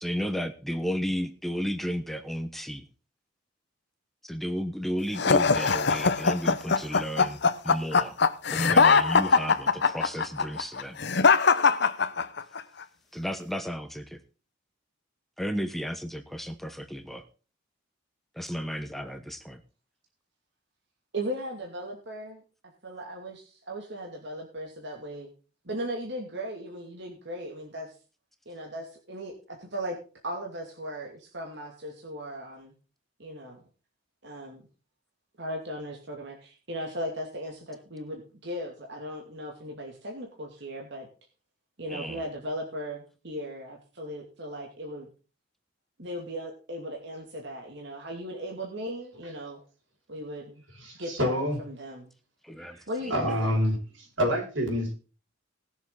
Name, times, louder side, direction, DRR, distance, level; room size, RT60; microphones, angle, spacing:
voice 1, 0.0-2.8 4.2-8.2 8.5-11.0 13.1-14.2 15.4-17.2 18.4-19.6 41.9-42.2 52.4-52.8, equal, ahead, 1.1 m, -33 dB
sound 1, 5.2-12.6, left 5 dB, 60° left, 1.0 m, -22 dB
voice 2, 21.1-22.4 22.8-25.3 25.6-27.9 28.5-30.0 30.2-32.7 33.2-33.6 34.2-34.6 35.4-41.1 41.8-45.1 46.0-49.6 50.1-50.6 51.0-52.1 52.9-53.6, equal, 60° right, 2.6 m, -37 dB
voice 3, 50.7-51.6 52.7-52.8 53.1-54.9, equal, 85° right, 6.3 m, -27 dB
19.5 x 7.2 x 4.0 m
head